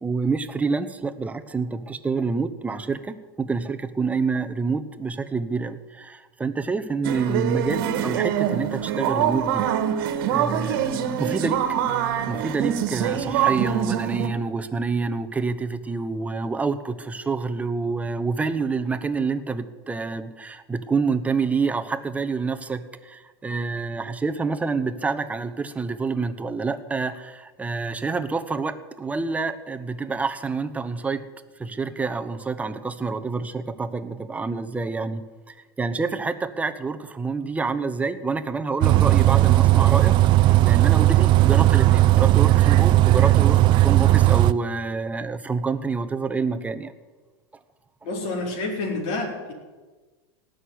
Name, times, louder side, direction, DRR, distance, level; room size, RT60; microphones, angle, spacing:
voice 1, 0.0-9.6 10.3-11.6 12.3-31.2 31.6-46.9, right 4 dB, 10° right, 9 dB, 0.9 m, -27 dB
sound 1, 7.0-14.3, right 9 dB, 65° right, 1.5 m, -24 dB
Bus, 38.8-44.5, right 16 dB, 40° right, 0.5 m, -16 dB
voice 2, 48.0-49.5, left 2 dB, 50° left, 0 dB, 4.5 m, -28 dB
18.0 x 6.5 x 9.6 m, 1.3 s
supercardioid pair, 125°, 13 cm